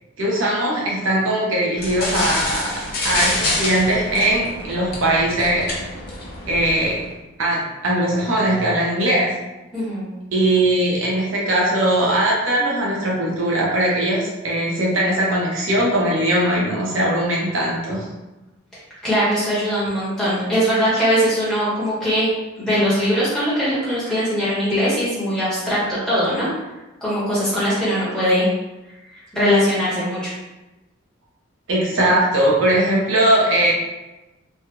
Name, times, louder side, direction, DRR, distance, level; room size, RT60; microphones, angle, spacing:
voice 1, 0.2-2.7 3.0-5.7 6.5-7.0 7.4-9.3 10.3-18.1 31.7-33.7, right 1 dB, 80° right, -4 dB, 0.8 m, -20 dB
sound 1, 1.8-7.1, left 2 dB, 45° left, 0.7 m, -27 dB
voice 2, 9.7-10.1 18.7-22.3 22.6-26.5 27.0-28.5 29.1-30.3, equal, 5° left, -11 dB, 1.1 m, -21 dB
3.2 x 2.3 x 2.8 m, 1.0 s
head